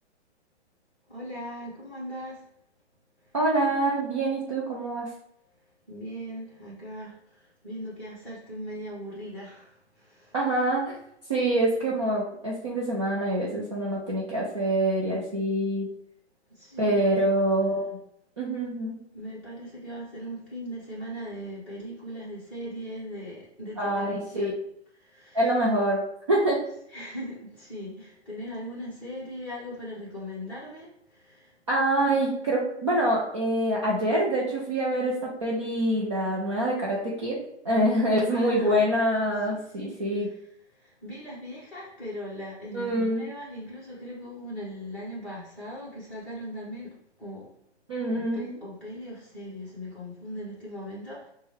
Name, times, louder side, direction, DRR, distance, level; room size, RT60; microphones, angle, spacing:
voice 1, 1.1-2.4 5.9-7.1 7.6-9.7 16.6-17.3 19.1-24.5 25.1-25.4 26.9-30.9 31.3-31.4 38.3-38.8 39.5-39.9 41.0-46.9 47.2-47.4 48.1-51.3, equal, 5° left, -11 dB, 0.8 m, -39 dB
voice 2, 3.3-5.1 10.3-10.9 11.3-15.9 16.8-17.9 18.4-19.0 23.8-24.5 25.3-26.0 26.3-26.6 31.7-37.4 37.6-40.3 42.7-43.2 47.9-48.6, right 1 dB, 25° right, -5 dB, 0.4 m, -25 dB
5.0 x 2.2 x 3.4 m, 0.74 s
hypercardioid pair, 170°, 34 cm